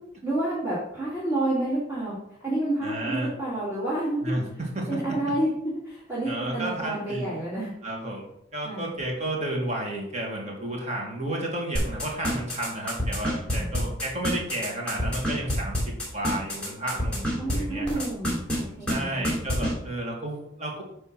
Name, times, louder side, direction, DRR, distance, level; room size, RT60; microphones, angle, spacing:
voice 1, 0.2-2.2 2.4-4.2 4.9-5.5 5.8-7.7 8.6-8.9 13.5-13.7 17.4-19.4, right 1 dB, 15° right, -11 dB, 2.3 m, -29 dB
voice 2, 2.8-3.3 4.2-5.3 6.2-7.4 7.8-18.0 18.9-20.8, right 1 dB, 35° right, -1 dB, 1.9 m, -32 dB
sound 1, 11.7-17.5 17.9-18.6 18.9-19.0 19.2-19.7, equal, 5° left, 2.7 m, -27 dB
9.2 x 3.3 x 6.0 m, 0.79 s
head